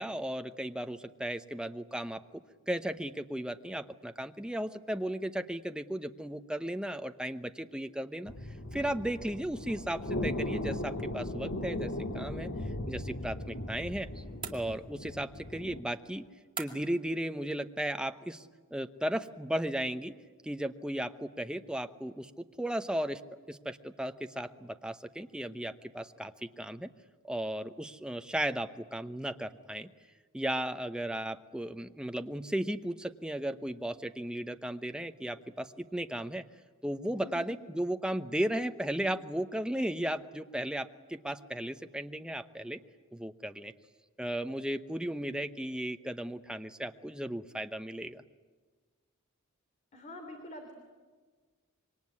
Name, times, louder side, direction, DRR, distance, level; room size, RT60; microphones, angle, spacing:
voice 1, 0.0-8.3 8.7-12.5 12.9-14.2 14.5-16.3 16.6-18.4 18.7-20.1 20.4-22.3 22.6-23.2 23.5-26.9 27.2-29.9 30.3-36.4 36.8-42.8 43.1-43.7 44.2-48.2, right 1 dB, 5° right, 8 dB, 0.8 m, -35 dB
sound 1, 8.3-15.8, left 1 dB, 60° left, 1.8 m, -37 dB
sound 2, 14.4-15.1 16.6-17.1, right 6 dB, 25° right, 2.4 m, -43 dB
voice 2, 37.1-37.5 49.9-50.7, equal, 35° left, 4 dB, 3.1 m, -46 dB
26.5 x 23.5 x 9.6 m, 1.4 s
head